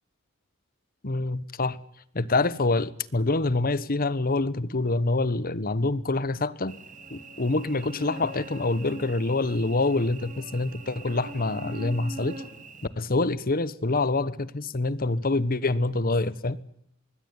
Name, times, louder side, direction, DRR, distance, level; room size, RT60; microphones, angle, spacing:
voice 1, 1.0-1.8 2.1-6.8 7.1-12.4 13.0-16.6, left 2 dB, 45° left, 1.2 m, -26 dB
Cricket / Buzz, 6.7-12.9, right 1 dB, 40° right, 3.4 m, -42 dB
24.5 x 20.5 x 9.7 m
head